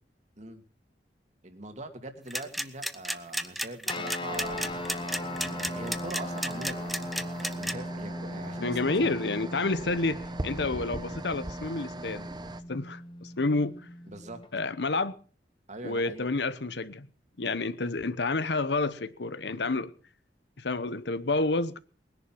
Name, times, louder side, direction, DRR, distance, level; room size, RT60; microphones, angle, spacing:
voice 1, 1.4-7.0 7.4-9.1 14.1-14.4 15.7-16.3, right 2 dB, 40° right, 2.3 m, -42 dB
sound 1, 2.3-7.7, equal, ahead, 0.8 m, -31 dB
sound 2, 3.9-14.5, left 1 dB, 30° left, 0.9 m, -38 dB
sound 3, 4.3-12.6, right 2 dB, 25° right, 0.9 m, -41 dB
voice 2, 8.6-12.3 12.7-13.9 14.5-15.2 15.8-17.1 17.4-19.9 20.6-21.8, left 3 dB, 70° left, 1.0 m, -29 dB
20.0 x 10.5 x 6.1 m
head